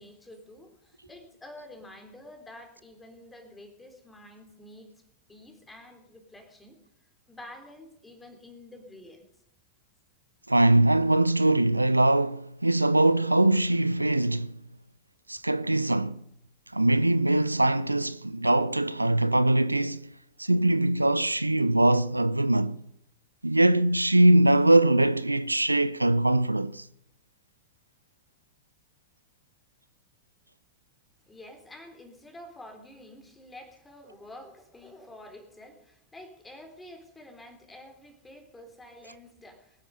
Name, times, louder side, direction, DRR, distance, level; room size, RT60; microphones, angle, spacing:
voice 1, 0.0-4.9 5.3-6.8 7.3-9.2 31.3-39.9, left 1 dB, 10° left, 3.8 m, -48 dB
voice 2, 10.5-14.6 15.3-16.2 16.7-20.1 20.4-22.8 23.4-26.8, right 1 dB, 85° right, 0.5 m, -22 dB
22.5 x 10.0 x 5.4 m
figure-of-eight pair, 90°, 0 cm